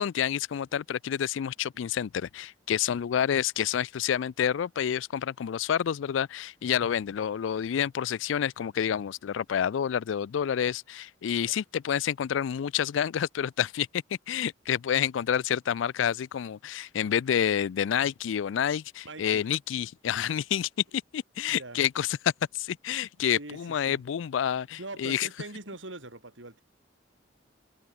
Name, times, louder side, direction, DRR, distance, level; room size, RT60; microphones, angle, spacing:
voice 1, 0.0-20.7 21.1-25.3, left 9 dB, 80° left, 0.4 m, -28 dB
voice 2, 19.0-19.5 21.5-21.8 23.3-24.0 24.8-26.6, right 2 dB, 85° right, 5.4 m, -42 dB
head